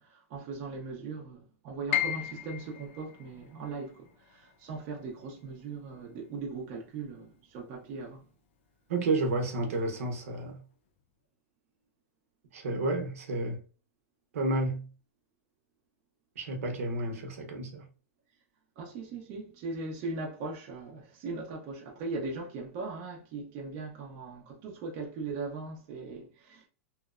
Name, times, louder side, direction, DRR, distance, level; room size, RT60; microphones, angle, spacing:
voice 1, 0.0-8.3 18.8-26.7, right 3 dB, 30° right, 0.5 m, -39 dB
Piano, 1.9-7.8 8.2-9.3 9.7-9.8 10.5-10.9, left 10 dB, 50° left, 0.4 m, -38 dB
voice 2, 8.9-10.6 12.5-13.6 14.3-14.9 16.4-17.9, right 2 dB, 70° right, 0.7 m, -31 dB
2.7 x 2.0 x 2.3 m
supercardioid pair, 165°, 8 cm